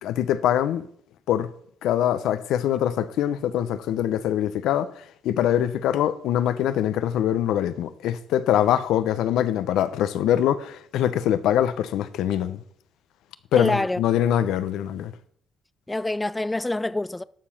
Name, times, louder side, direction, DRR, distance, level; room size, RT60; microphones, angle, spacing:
voice 1, 0.0-0.9 1.3-1.5 1.8-4.9 5.2-12.6 13.5-15.1, left 11 dB, 85° left, 0.7 m, -23 dB
voice 2, 13.6-14.0 15.9-17.2, left 2 dB, 15° left, 0.3 m, -26 dB
13.0 x 4.9 x 5.7 m
cardioid pair, 90°, 0 cm